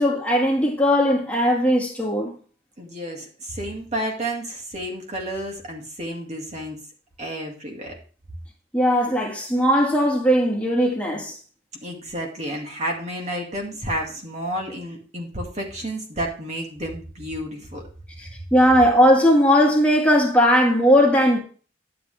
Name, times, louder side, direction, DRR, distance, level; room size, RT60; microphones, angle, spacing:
voice 1, 0.0-2.3 8.7-11.3 18.2-21.4, equal, 5° left, 1.7 m, -18 dB
voice 2, 2.8-6.8 7.2-7.9 11.8-17.8, right 1 dB, 35° right, 2.1 m, -31 dB
11.0 x 7.8 x 3.3 m
head